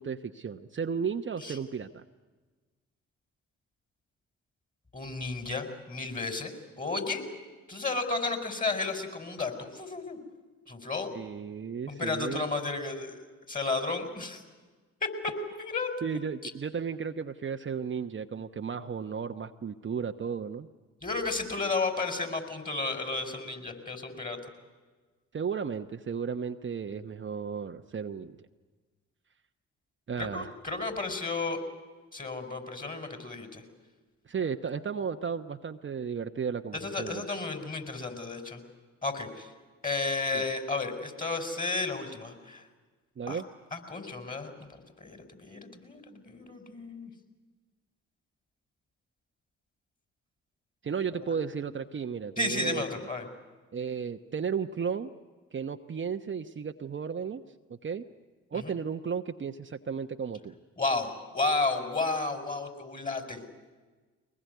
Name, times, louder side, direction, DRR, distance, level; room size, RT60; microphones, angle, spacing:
voice 1, 0.0-2.0 11.1-12.5 16.0-20.7 25.3-28.4 30.1-30.5 34.3-37.2 40.3-40.4 43.2-43.4 50.8-52.8 53.7-55.1 55.5-57.4 57.8-58.0 58.5-60.5, right 6 dB, 35° right, 6 dB, 1.0 m, -34 dB
voice 2, 4.9-7.2 7.7-10.2 10.7-11.1 11.9-13.1 13.5-14.4 15.0-15.9 16.4-16.5 21.0-24.4 30.2-31.6 32.1-33.6 36.7-38.6 39.0-39.5 39.8-42.6 43.3-43.4 43.7-44.5 45.0-47.1 51.3-51.4 52.4-53.2 58.5-58.6 60.8-63.4, left 3 dB, 25° left, 7 dB, 5.0 m, -32 dB
22.5 x 20.0 x 9.3 m, 1.3 s
hypercardioid pair, 50°, 32 cm